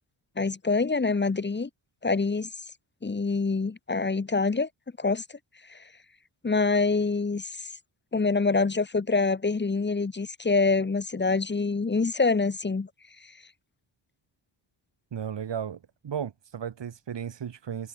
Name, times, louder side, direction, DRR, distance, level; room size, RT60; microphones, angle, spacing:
voice 1, 0.4-1.7 2.0-2.5 3.0-4.7 5.0-5.2 5.7-5.8 6.4-7.7 8.1-12.9, left 4 dB, 25° left, 1.9 m, -25 dB
voice 2, 15.1-15.8 16.0-17.9, right 8 dB, 65° right, 7.5 m, -34 dB
wide cardioid pair, 180°, 46 cm